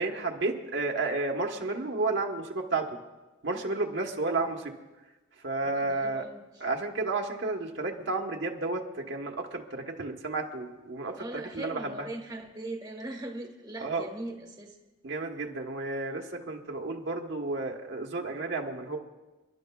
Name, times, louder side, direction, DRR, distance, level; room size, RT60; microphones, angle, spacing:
voice 1, 0.0-2.9 3.4-4.7 5.4-6.2 6.6-12.1 13.8-14.0 15.0-19.0, right 3 dB, 65° right, 1 dB, 1.2 m, -32 dB
voice 2, 5.7-6.4 11.1-14.7, right 1 dB, 20° right, 2 dB, 1.3 m, -40 dB
29.5 x 11.5 x 2.3 m, 1.1 s
head